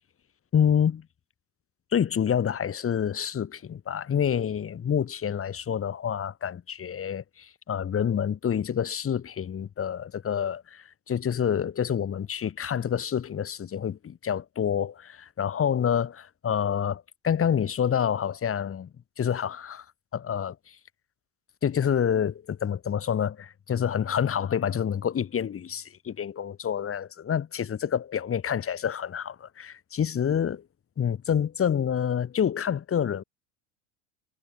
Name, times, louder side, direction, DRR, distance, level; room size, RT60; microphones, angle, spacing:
voice 1, 0.5-1.1 1.9-18.9 19.2-19.8 20.1-20.8 21.6-30.6 31.0-33.2, left 8 dB, 35° left, 3.3 m, -27 dB
hypercardioid pair, 80°, 40 cm